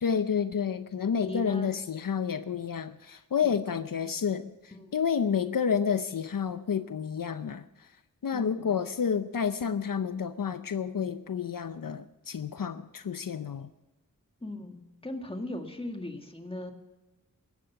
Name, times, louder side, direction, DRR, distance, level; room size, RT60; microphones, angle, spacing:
voice 1, 0.0-4.5 4.9-7.6 8.2-13.7, left 7 dB, 75° left, 11 dB, 0.6 m, -30 dB
voice 2, 1.3-1.7 3.4-3.5 4.8-4.9 8.3-8.7 14.4-16.7, left 1 dB, 15° left, 4 dB, 2.0 m, -38 dB
16.0 x 11.5 x 5.8 m, 1.1 s
wide cardioid pair, 65°, 34 cm